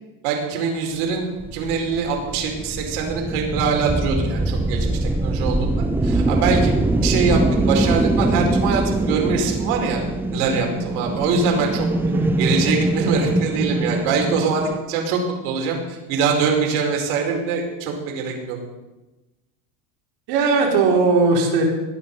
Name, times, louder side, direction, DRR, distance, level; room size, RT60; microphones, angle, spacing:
voice 1, 0.2-7.4 7.7-10.0 10.3-11.9 12.4-18.6, right 5 dB, 75° right, 1 dB, 5.0 m, -23 dB
sound 1, 1.4-14.8, right 2 dB, 5° right, 0.5 m, -22 dB
voice 2, 20.3-21.6, right 4 dB, 60° right, 0 dB, 4.8 m, -18 dB
21.0 x 9.9 x 5.6 m, 1.1 s
supercardioid pair, 135°, 44 cm